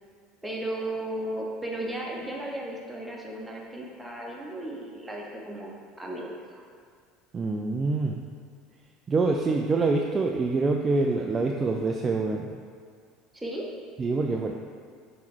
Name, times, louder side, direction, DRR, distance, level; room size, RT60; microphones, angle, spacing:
voice 1, 0.4-6.7 11.9-12.0 13.3-13.7, right 1 dB, 5° right, -2 dB, 1.2 m, -35 dB
voice 2, 7.3-8.2 9.1-12.5 14.0-14.5, right 3 dB, 30° right, 2 dB, 0.4 m, -25 dB
6.9 x 3.2 x 4.5 m, 2.1 s
figure-of-eight pair, 70°, 0 cm